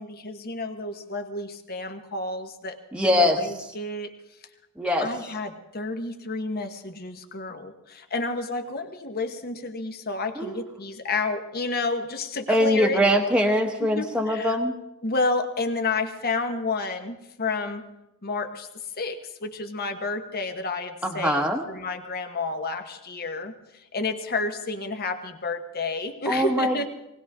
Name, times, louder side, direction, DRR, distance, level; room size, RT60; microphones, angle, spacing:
voice 1, 0.0-2.8 3.0-4.1 5.0-13.0 13.8-14.6 15.0-17.9 18.2-18.7 19.0-26.9, left 3 dB, 45° left, 7 dB, 1.2 m, -30 dB
voice 2, 2.9-3.4 4.8-5.1 10.4-10.5 12.5-14.7 21.0-21.6 26.3-26.9, equal, 5° right, 2 dB, 1.1 m, -22 dB
19.5 x 18.0 x 3.6 m, 0.90 s
head